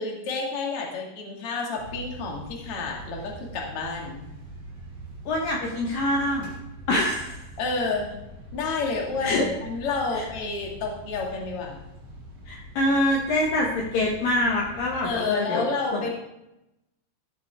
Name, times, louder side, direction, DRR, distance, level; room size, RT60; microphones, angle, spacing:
voice 1, 0.0-4.2 7.6-8.1 8.5-11.8 14.9-16.1, left 4 dB, 55° left, -1 dB, 1.6 m, -30 dB
sound 1, 1.8-15.1, right 1 dB, 30° right, 2.6 m, -43 dB
voice 2, 5.3-6.5 6.9-7.4 9.2-9.5 10.1-10.3 12.5-15.7 15.9-16.1, left 1 dB, 85° left, -1 dB, 1.9 m, -25 dB
14.5 x 8.1 x 3.4 m, 0.88 s
omnidirectional pair, 5.8 m